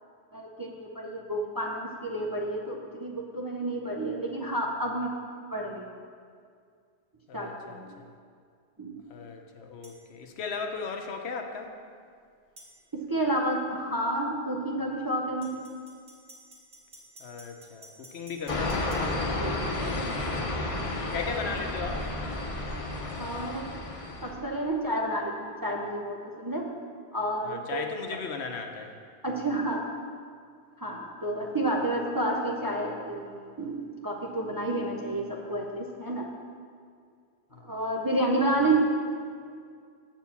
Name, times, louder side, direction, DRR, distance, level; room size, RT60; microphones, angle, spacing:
voice 1, 0.3-5.1 5.5-6.0 7.3-8.0 8.8-9.0 12.9-15.6 19.3-20.3 23.2-23.8 24.2-26.7 27.1-27.9 29.2-29.9 30.8-36.3 37.6-38.8, right 1 dB, 25° right, -1 dB, 0.5 m, -30 dB
voice 2, 7.3-8.1 9.1-11.7 17.2-19.1 21.1-22.1 27.4-28.9 37.5-37.6, left 5 dB, 75° left, 4 dB, 1.0 m, -37 dB
sound 1, 9.8-10.0 12.6-12.7 15.4-19.1, right 1 dB, 55° right, 1.6 m, -51 dB
sound 2, 18.5-24.3, left 2 dB, 35° left, 0.8 m, -32 dB
7.5 x 4.5 x 7.0 m, 2.2 s
omnidirectional pair, 1.1 m